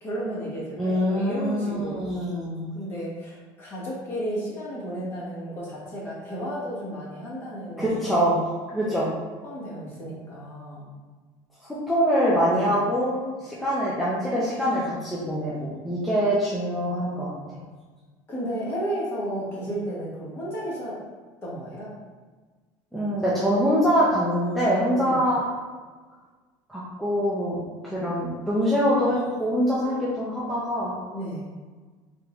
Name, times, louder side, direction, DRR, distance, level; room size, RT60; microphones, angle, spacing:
voice 1, 0.0-2.1 2.7-8.0 8.8-9.0 9.4-10.9 12.5-12.8 18.3-21.0 21.4-21.9 24.9-25.2 31.1-31.5, equal, 25° left, -6 dB, 1.2 m, -33 dB
voice 2, 0.8-2.7 7.8-8.4 8.7-9.0 11.6-17.6 22.9-25.5 26.7-27.6 27.8-30.9, equal, ahead, -9 dB, 0.5 m, -24 dB
3.6 x 3.5 x 3.0 m, 1.4 s
cardioid pair, 170°, 9 cm